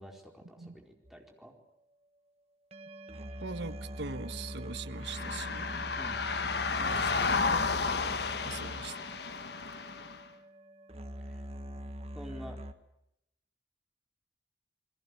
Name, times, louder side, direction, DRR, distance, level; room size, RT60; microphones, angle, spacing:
voice 1, 0.0-1.5 6.0-6.3 11.2-11.4 12.1-12.6, equal, ahead, 1 dB, 4.4 m, -48 dB
sound 1, 1.0-1.2 2.7-12.7, equal, 35° right, 1.5 m, -44 dB
voice 2, 3.4-5.9 6.8-7.5 8.4-9.1, right 4 dB, 70° right, 12 dB, 1.4 m, -42 dB
sound 2, 5.0-10.2, left 4 dB, 60° left, 1.3 m, -32 dB
29.0 x 22.0 x 8.5 m, 0.81 s
head